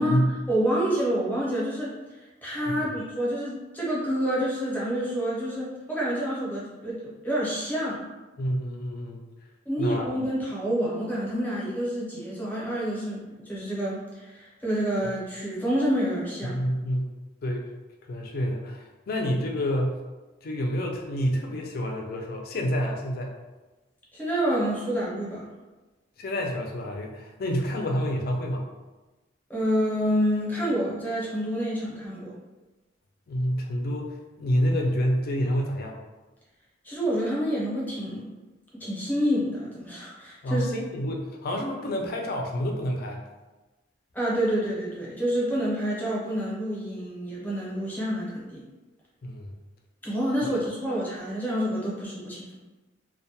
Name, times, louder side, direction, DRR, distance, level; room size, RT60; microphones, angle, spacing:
voice 1, 0.0-8.1 9.7-16.6 24.1-25.4 29.5-32.3 36.8-38.4 38.7-40.8 44.1-48.6 50.0-52.6, equal, 10° left, -6 dB, 0.6 m, -28 dB
voice 2, 8.4-9.2 9.8-10.1 16.5-17.1 17.4-17.7 18.1-20.0 20.4-23.3 26.2-28.7 33.3-36.0 40.4-43.2 49.2-49.5, equal, 55° left, 1 dB, 0.4 m, -28 dB
2.1 x 2.1 x 2.7 m, 1.2 s
head